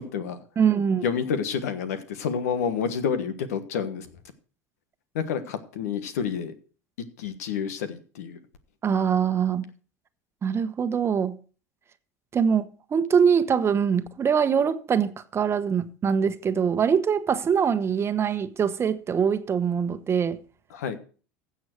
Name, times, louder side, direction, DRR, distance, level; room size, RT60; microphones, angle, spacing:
voice 1, 0.0-0.4 1.0-4.1 5.1-6.5 7.2-8.4 20.7-21.0, left 7 dB, 80° left, 1.3 m, -29 dB
voice 2, 0.6-1.0 8.8-9.7 10.4-11.4 12.3-20.4, right 7 dB, 30° right, 1.1 m, -23 dB
15.5 x 7.1 x 4.5 m
hypercardioid pair, 85°, 8 cm